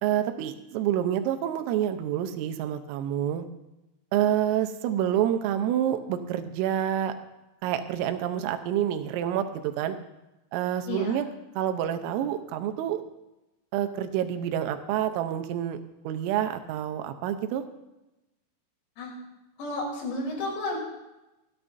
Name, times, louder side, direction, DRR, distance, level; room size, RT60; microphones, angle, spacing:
voice 1, 0.0-3.5 4.1-7.1 7.6-10.0 10.5-11.3 11.6-13.0 13.7-15.8 16.0-17.6, right 10 dB, 85° right, 8 dB, 3.4 m, -28 dB
voice 2, 10.9-11.2 19.0-19.2 19.6-20.8, left 2 dB, 90° left, -2 dB, 6.1 m, -32 dB
28.0 x 10.0 x 2.6 m, 0.97 s
omnidirectional pair, 5.9 m